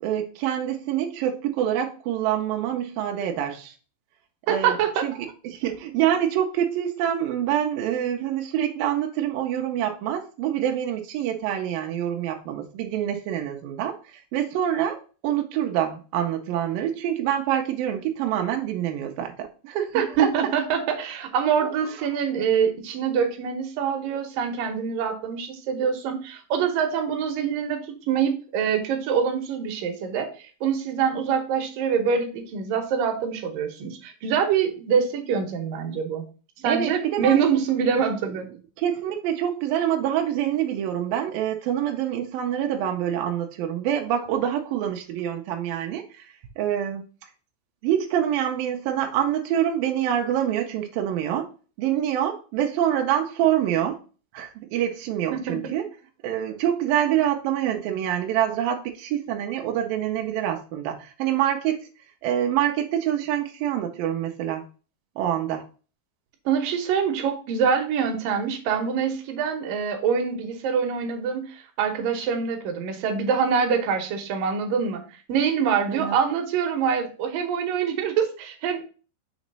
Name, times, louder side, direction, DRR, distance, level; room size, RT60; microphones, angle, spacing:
voice 1, 0.0-3.7 4.5-20.3 21.6-21.7 36.7-37.4 38.3-38.4 38.8-47.0 47.8-51.5 51.8-54.0 54.3-55.9 56.2-61.9 62.2-64.6 65.2-65.7 75.9-76.2, right 10 dB, 90° right, 3 dB, 1.9 m, -26 dB
voice 2, 4.5-5.1 19.9-36.3 36.6-38.5 55.3-55.8 66.5-75.0 75.3-78.8, right 7 dB, 70° right, 5 dB, 2.1 m, -25 dB
6.3 x 3.1 x 5.2 m, 0.37 s
omnidirectional pair, 5.0 m